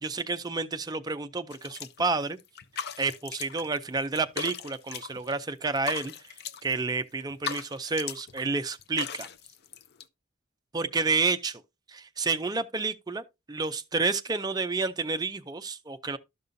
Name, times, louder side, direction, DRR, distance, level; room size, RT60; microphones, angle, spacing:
voice 1, 0.0-2.4 3.0-6.3 6.6-9.3 10.7-11.6 11.9-16.2, right 3 dB, 20° right, 0.4 m, -30 dB
sound 1, 1.5-2.1 2.4-3.8 4.0-5.4 5.7-6.8 7.2-8.4 8.7-10.0, left 7 dB, 50° left, 0.5 m, -38 dB
12.5 x 5.3 x 2.6 m
head